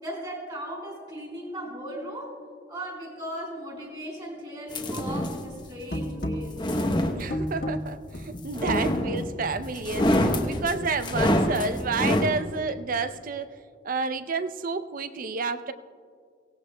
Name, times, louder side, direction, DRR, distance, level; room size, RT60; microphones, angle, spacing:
voice 1, 0.0-2.4 2.7-6.6, equal, 25° right, -1 dB, 3.8 m, -37 dB
sound 1, 4.7-5.5 6.4-7.7 8.5-9.4 9.8-12.4, left 1 dB, 20° left, 0.8 m, -26 dB
sound 2, 5.7-11.1, equal, 50° left, 1.3 m, -33 dB
voice 2, 7.2-13.5 13.8-15.7, right 4 dB, 45° right, 11 dB, 0.5 m, -30 dB
24.0 x 17.5 x 2.2 m, 2.1 s
head